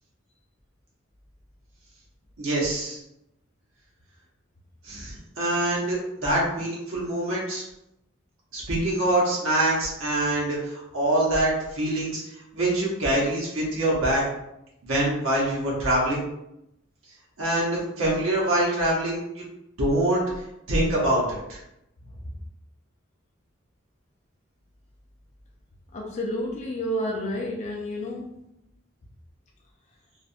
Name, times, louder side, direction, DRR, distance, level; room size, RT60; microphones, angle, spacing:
voice 1, 2.4-3.0 4.8-7.6 8.5-12.2 12.5-14.2 14.8-16.2 17.4-19.4 19.8-20.2 20.7-21.6, right 1 dB, 85° right, -5 dB, 0.8 m, -25 dB
voice 2, 25.9-28.4, equal, 35° left, -2 dB, 0.4 m, -30 dB
3.1 x 2.1 x 2.5 m, 0.84 s
head